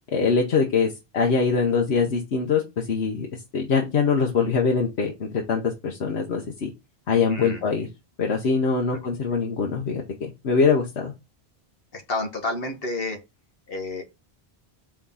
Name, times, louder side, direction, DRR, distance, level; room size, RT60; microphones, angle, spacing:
voice 1, 0.1-3.3 3.5-6.7 7.1-7.9 8.2-11.1, left 5 dB, 85° left, 1 dB, 1.2 m, -23 dB
voice 2, 7.3-7.6 11.9-13.2 13.7-14.0, left 2 dB, 65° left, 4 dB, 1.5 m, -30 dB
5.1 x 3.7 x 5.5 m, 0.24 s
omnidirectional pair, 1.1 m